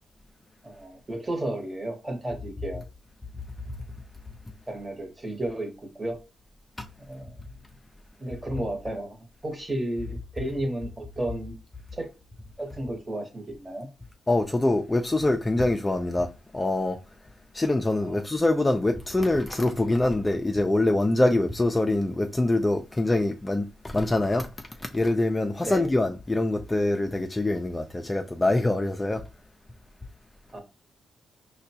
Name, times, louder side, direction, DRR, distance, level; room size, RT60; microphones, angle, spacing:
voice 1, 0.6-2.8 4.7-5.7 6.0-6.2 7.1-7.4 8.2-9.2 9.4-11.6 12.0-12.1 12.6-13.9 18.0-18.2 25.6-25.9 30.5-30.6, right 1 dB, 20° right, 1.0 m, -32 dB
voice 2, 14.3-17.0 17.5-29.2, left 2 dB, 15° left, 0.3 m, -24 dB
5.0 x 2.2 x 2.7 m
cardioid pair, 95°, 0 cm